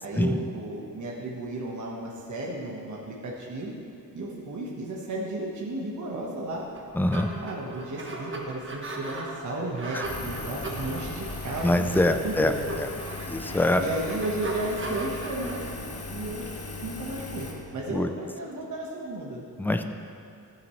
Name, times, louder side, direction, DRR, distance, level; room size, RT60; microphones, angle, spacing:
voice 1, 0.0-3.8 4.1-6.6 7.4-12.6 13.8-15.6 16.1-16.5 16.8-17.5 17.7-19.4, right 2 dB, 55° right, -3 dB, 1.4 m, -34 dB
sound 1, 6.6-17.3, right 2 dB, 35° right, 1.3 m, -38 dB
voice 2, 7.0-7.3 9.9-10.0 11.6-12.9 13.3-13.8 17.9-18.1 19.6-19.8, left 1 dB, 5° left, 7 dB, 0.5 m, -24 dB
Engine, 10.0-17.5, left 3 dB, 40° left, 1.4 m, -37 dB
15.0 x 9.2 x 3.2 m, 2.7 s
wide cardioid pair, 120°, 35 cm